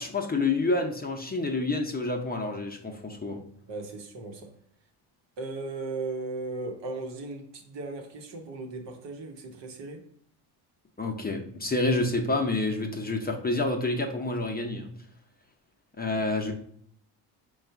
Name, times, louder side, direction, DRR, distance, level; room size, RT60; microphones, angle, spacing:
voice 1, 0.0-3.4 11.0-14.9 16.0-16.5, left 2 dB, 20° left, 0.7 m, -28 dB
voice 2, 3.7-4.6 5.4-10.1, right 3 dB, 55° right, 1.1 m, -37 dB
4.6 x 2.4 x 4.5 m
supercardioid pair, 70°, 50 cm